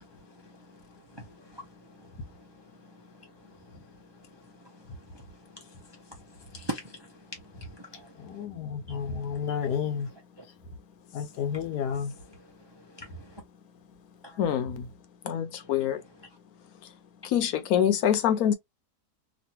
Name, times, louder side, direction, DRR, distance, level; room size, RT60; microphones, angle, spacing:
voice 1, 1.1-1.7 5.1-5.2 5.6-5.7 5.9-6.0 6.4-7.1 7.5-8.4 8.9-9.0 9.3-9.8 12.9-13.3 14.2-14.4, right 1 dB, 35° right, 0.4 m, -42 dB
voice 2, 8.2-10.1 11.1-12.1, left 7 dB, 85° left, 1.4 m, -31 dB
voice 3, 14.4-14.9 15.2-16.0 17.2-18.5, left 9 dB, 70° left, 1.1 m, -25 dB
3.1 x 2.6 x 2.8 m
omnidirectional pair, 1.7 m